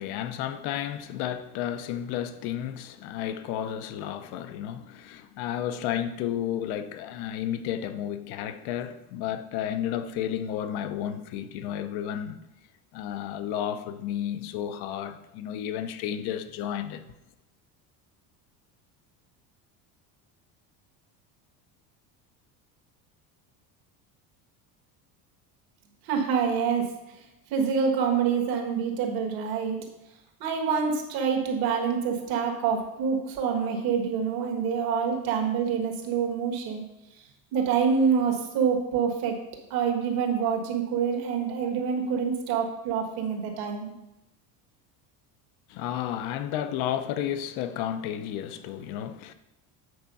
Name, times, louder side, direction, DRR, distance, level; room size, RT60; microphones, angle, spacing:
voice 1, 0.0-12.4 12.9-17.0 45.7-49.3, left 10 dB, 70° left, 0.7 m, -32 dB
voice 2, 26.0-27.0 27.5-29.8 30.4-36.8 37.5-39.4 39.7-43.9, right 6 dB, 65° right, 1.6 m, -26 dB
7.9 x 4.6 x 5.4 m
cardioid pair, 160°, 40 cm